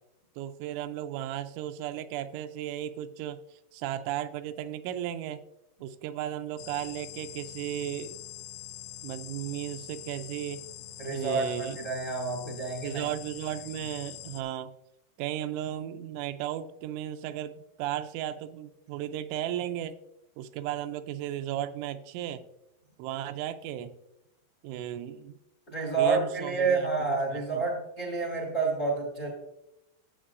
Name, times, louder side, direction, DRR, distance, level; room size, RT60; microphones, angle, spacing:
voice 1, 0.4-3.4 3.7-5.4 5.8-8.2 9.0-10.6 11.1-11.8 12.5-12.6 12.8-14.7 15.2-20.0 20.4-22.4 23.0-23.9 24.6-25.4 26.0-26.9 27.3-27.7, right 11 dB, 85° right, 9 dB, 3.0 m, -35 dB
sound 1, 6.6-14.4, left 14 dB, 90° left, 2.3 m, -44 dB
voice 2, 11.0-13.1 25.7-29.3, right 4 dB, 30° left, 0 dB, 1.5 m, -29 dB
12.5 x 8.0 x 2.5 m, 0.87 s
omnidirectional pair, 5.4 m